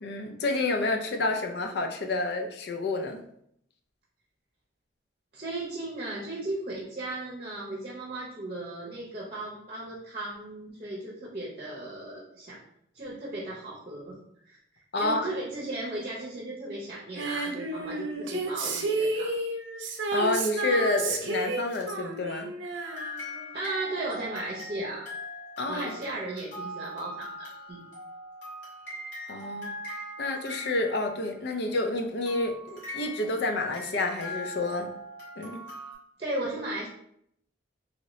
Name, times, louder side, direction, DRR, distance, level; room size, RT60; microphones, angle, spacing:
voice 1, 0.0-3.3 14.9-15.3 20.1-22.5 25.6-26.0 29.3-29.8 30.2-34.9 35.4-35.7, left 2 dB, 60° left, 4 dB, 0.4 m, -29 dB
voice 2, 5.3-12.6 12.9-14.2 14.4-14.6 15.0-19.3 23.5-25.1 25.7-27.8 36.2-36.9, right 2 dB, 35° right, -5 dB, 0.7 m, -36 dB
Female singing, 17.2-23.8 24.1-24.2, right 2 dB, 75° right, 0.5 m, -31 dB
sound 1, 22.8-31.4 32.3-35.9, left 1 dB, 85° left, 1.3 m, -41 dB
2.8 x 2.7 x 3.0 m, 0.71 s
head